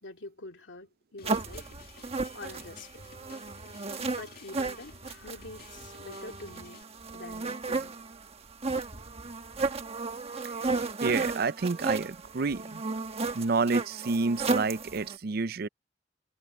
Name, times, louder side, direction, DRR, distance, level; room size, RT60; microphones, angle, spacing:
voice 1, 0.0-1.7 2.3-3.0 4.2-5.0 5.2-6.9 7.1-8.0, left 2 dB, 80° left, 2.5 m, -45 dB
sound 1, 1.2-6.8, left 3 dB, 55° left, 2.2 m, -52 dB
sound 2, 1.2-15.2, right 3 dB, 35° right, 1.3 m, -34 dB
voice 2, 10.7-12.8 13.3-15.7, right 4 dB, 60° right, 0.6 m, -29 dB
head